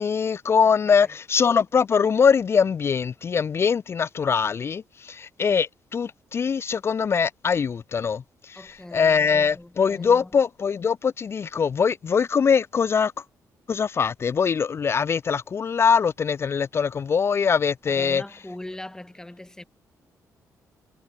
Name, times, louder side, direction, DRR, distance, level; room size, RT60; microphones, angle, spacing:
voice 1, 0.0-8.6 8.9-13.1 13.7-18.2, left 6 dB, 40° left, 0.4 m, -22 dB
voice 2, 8.6-10.4 17.9-19.6, left 1 dB, 10° left, 5.6 m, -41 dB
cardioid pair, 95°, 6 cm